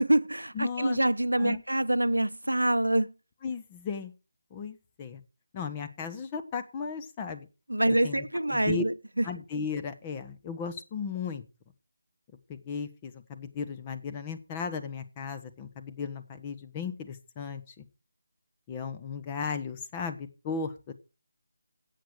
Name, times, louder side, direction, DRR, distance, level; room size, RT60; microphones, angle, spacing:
voice 1, 0.0-3.1 7.7-8.9 9.2-9.3, right 1 dB, 80° right, 0.8 m, -25 dB
voice 2, 0.5-1.0 1.4-1.6 3.4-4.1 4.5-5.2 5.5-7.5 8.0-8.8 9.2-11.4 12.5-17.8 18.7-20.9, left 5 dB, 20° left, 1.2 m, -36 dB
14.0 x 8.6 x 4.7 m
figure-of-eight pair, 155°, 0 cm